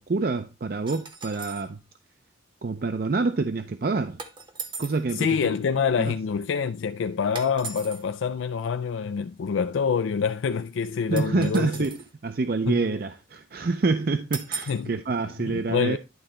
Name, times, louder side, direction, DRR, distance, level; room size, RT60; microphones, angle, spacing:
voice 1, 0.0-1.8 2.6-4.2 4.8-5.3 6.0-6.1 11.1-16.0, right 3 dB, 50° right, 0.5 m, -27 dB
sound 1, 0.9-1.7 4.2-5.1 7.3-8.0 11.2-12.1 14.3-14.9, right 4 dB, 25° right, 0.8 m, -38 dB
voice 2, 5.1-11.7 12.7-12.8 14.7-14.9 15.4-16.0, left 6 dB, 90° left, 0.4 m, -26 dB
11.0 x 3.8 x 4.3 m
head